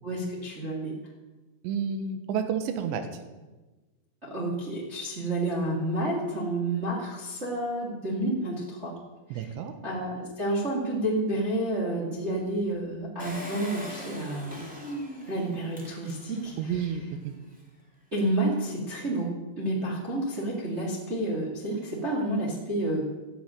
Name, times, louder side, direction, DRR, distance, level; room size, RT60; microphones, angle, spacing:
voice 1, 0.0-0.9 4.2-8.9 9.3-9.4 9.8-14.6 15.3-16.7 18.1-19.3 19.5-23.0, right 1 dB, 45° right, -3 dB, 0.8 m, -30 dB
voice 2, 1.6-3.1 9.3-9.7 16.6-17.3, right 7 dB, 70° right, 7 dB, 3.2 m, -30 dB
Engine, 13.2-16.6 17.1-17.2 17.4-17.5, equal, 10° right, 0.4 m, -40 dB
13.0 x 8.0 x 9.1 m, 1.2 s
omnidirectional pair, 6.0 m